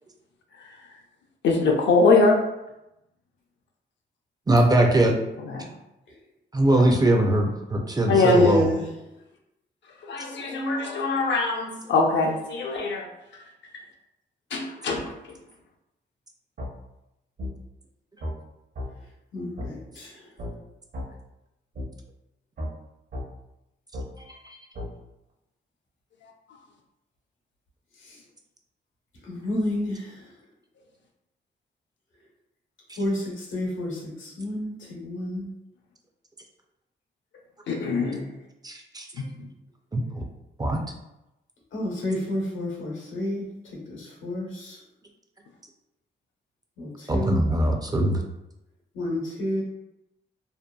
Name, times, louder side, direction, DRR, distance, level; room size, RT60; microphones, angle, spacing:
voice 1, 1.4-2.4 5.4-5.7 6.8-6.9 8.1-8.4 10.0-13.1 14.5-15.4 37.7-38.2 39.1-39.5, left 3 dB, 70° left, 1 dB, 0.5 m, -23 dB
voice 2, 4.5-5.1 6.5-8.6 24.5-24.6 38.6-39.1 39.9-40.2 40.6-40.8 47.1-48.2, right 1 dB, 20° right, 2 dB, 0.3 m, -21 dB
voice 3, 8.1-8.8 19.3-20.3 28.0-28.2 29.2-30.2 33.0-35.5 41.7-44.8 46.8-47.4 48.9-49.6, left 1 dB, 85° left, -3 dB, 0.9 m, -30 dB
sound 1, 16.6-16.7 17.4-17.5 18.2-18.4 18.8-18.9 19.6-19.7 20.4-20.5 20.9-21.1 21.8-21.9 22.6-22.7 23.1-23.3 23.9-24.1 24.8-24.9, left 1 dB, 55° right, 0.7 m, -33 dB
2.7 x 2.2 x 2.2 m, 0.90 s
cardioid pair, 85°, 20 cm